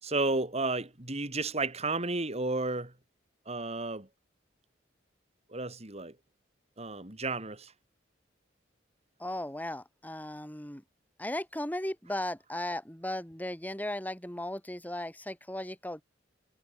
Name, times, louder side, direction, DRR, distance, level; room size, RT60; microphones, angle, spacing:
voice 1, 0.0-2.9 3.5-4.1 5.5-6.2 6.8-7.7, right 3 dB, 35° right, 3.0 m, -32 dB
voice 2, 9.2-10.8 11.2-16.0, left 1 dB, 10° left, 4.1 m, -36 dB
head